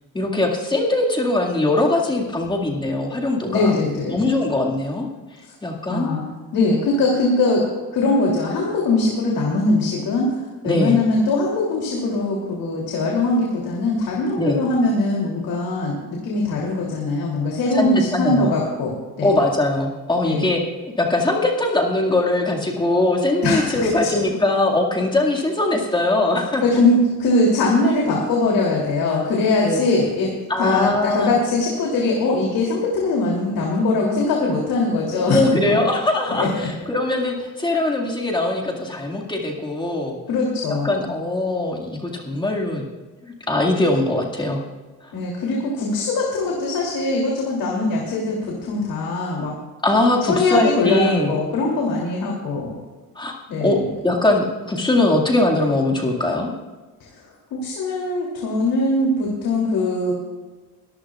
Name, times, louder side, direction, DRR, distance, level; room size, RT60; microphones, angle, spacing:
voice 1, 0.1-3.8 4.1-5.1 5.6-6.1 10.6-11.0 14.4-14.6 17.7-18.5 19.2-20.6 21.0-26.6 29.6-29.8 30.5-31.3 35.0-40.2 40.7-42.8 43.2-44.6 45.0-45.1 49.8-51.3 53.2-53.3 53.6-53.8 54.0-56.5, left 2 dB, 10° left, -2 dB, 2.1 m, -21 dB
voice 2, 3.4-4.3 5.4-5.5 5.9-6.2 6.5-7.6 7.9-10.3 10.6-19.3 20.2-20.5 23.4-24.1 26.6-30.3 30.6-35.4 35.7-35.8 36.3-36.7 40.3-41.1 45.1-49.5 50.3-52.7 53.5-53.8 57.0-57.1 57.6-60.1, left 2 dB, 70° left, -3 dB, 3.1 m, -21 dB
22.0 x 14.5 x 2.4 m, 1.3 s
cardioid pair, 165°, 37 cm